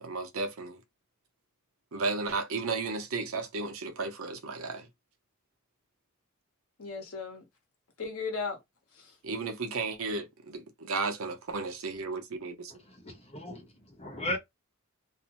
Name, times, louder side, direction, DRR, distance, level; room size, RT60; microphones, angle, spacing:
voice 1, 0.0-0.8 1.9-4.9 9.2-12.7, right 3 dB, 70° right, 0.7 m, -34 dB
voice 2, 6.8-7.4 8.0-8.6 9.0-9.1, left 4 dB, 80° left, 1.0 m, -36 dB
voice 3, 12.8-14.4, left 1 dB, 30° left, 0.9 m, -37 dB
2.6 x 2.1 x 2.9 m
head